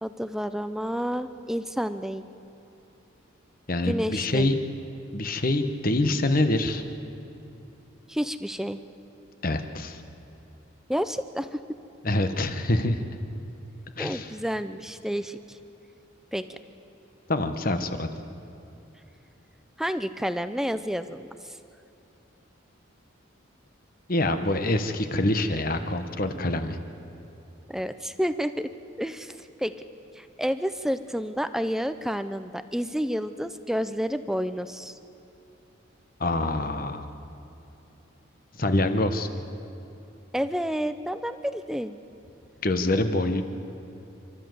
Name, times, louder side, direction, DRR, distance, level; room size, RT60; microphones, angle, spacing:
voice 1, 0.0-2.3 3.9-4.5 8.1-8.8 10.9-11.6 14.0-15.6 16.3-16.6 19.8-21.6 27.7-28.7 29.0-29.7 30.1-35.0 40.3-42.0, equal, ahead, 11 dB, 0.5 m, -30 dB
voice 2, 3.7-4.6 5.1-6.8 9.4-10.0 12.0-13.1 14.0-14.3 17.3-18.1 24.1-26.8 36.2-37.1 38.6-39.3 42.6-43.4, left 2 dB, 45° left, 8 dB, 1.1 m, -25 dB
28.5 x 13.0 x 7.8 m, 2.9 s
head